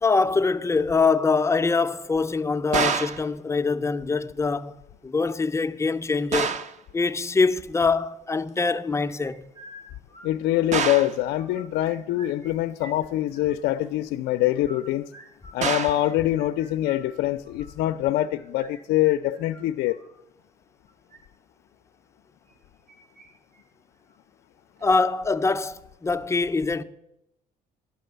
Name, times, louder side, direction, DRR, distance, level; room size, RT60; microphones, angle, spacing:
voice 1, 0.0-4.8 5.0-6.6 6.9-9.5 24.8-26.8, left 4 dB, 15° left, 0.4 m, -24 dB
sound 1, 2.7-3.3 6.3-6.8 10.7-11.2 15.6-16.1, right 6 dB, 45° right, 0.6 m, -26 dB
sound 2, 9.0-10.9 11.2-12.5 12.8-13.8 14.5-20.1 20.9-21.2 22.4-23.3 23.5-23.6 24.1-24.2 24.8-25.1, right 1 dB, 60° right, 2.8 m, -49 dB
voice 2, 10.2-15.1 15.5-20.0, left 14 dB, 80° left, 0.4 m, -24 dB
11.5 x 5.3 x 7.8 m
cardioid pair, 110°, 17 cm